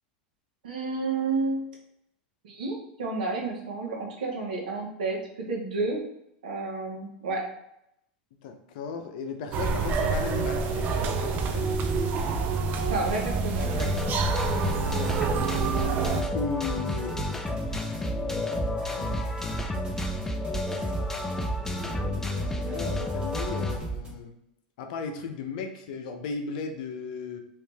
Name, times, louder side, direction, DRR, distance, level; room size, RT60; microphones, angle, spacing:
voice 1, 0.6-1.6 2.4-5.2 5.5-6.0 6.4-7.4 12.9-13.9, right 3 dB, 80° right, -1 dB, 1.2 m, -30 dB
voice 2, 8.4-11.7 16.1-18.6 18.9-19.2 21.6-24.3 24.8-27.4, left 5 dB, 65° left, 5 dB, 0.7 m, -36 dB
sound 1, 9.5-16.2, right 4 dB, 40° right, 0.5 m, -28 dB
sound 2, 9.8-24.1, right 4 dB, 20° right, 1.5 m, -37 dB
sound 3, 13.6-23.8, left 2 dB, 10° left, 0.4 m, -31 dB
3.1 x 3.1 x 3.4 m, 0.80 s
hypercardioid pair, 100°, 5 cm